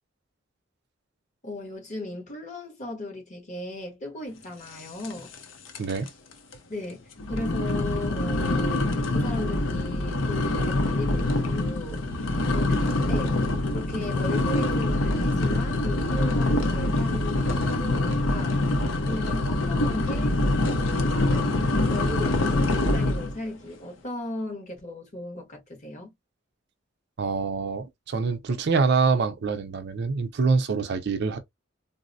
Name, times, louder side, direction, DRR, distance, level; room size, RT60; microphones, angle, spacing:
voice 1, 1.4-5.3 6.7-12.1 12.5-13.4 13.7-18.6 19.0-20.4 20.7-21.5 21.9-26.1, left 1 dB, 40° left, 1.2 m, -37 dB
sound 1, 5.0-5.4 5.7-6.1 6.5-6.6 7.2-23.4, left 2 dB, 75° left, 0.6 m, -25 dB
voice 2, 5.8-6.1 27.2-31.4, right 4 dB, 60° right, 0.5 m, -25 dB
3.9 x 2.0 x 2.5 m
head